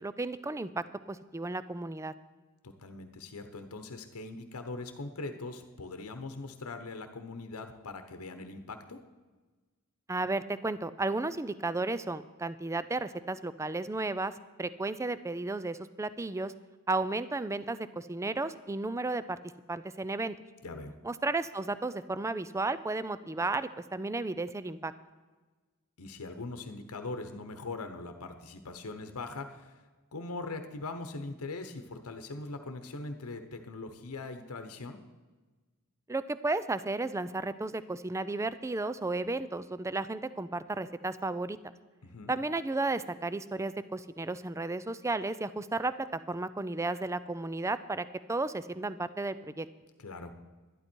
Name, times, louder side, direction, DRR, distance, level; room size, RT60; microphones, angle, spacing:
voice 1, 0.0-2.1 10.1-14.3 14.6-16.5 16.9-19.4 19.7-20.4 21.0-24.9 36.1-41.6 42.3-49.7, right 2 dB, 15° right, 14 dB, 0.4 m, -33 dB
voice 2, 2.6-9.0 20.6-20.9 26.0-29.7 30.1-35.0 42.0-42.3 50.0-50.3, left 3 dB, 80° left, 7 dB, 1.0 m, -41 dB
11.5 x 11.5 x 4.5 m, 1.3 s
head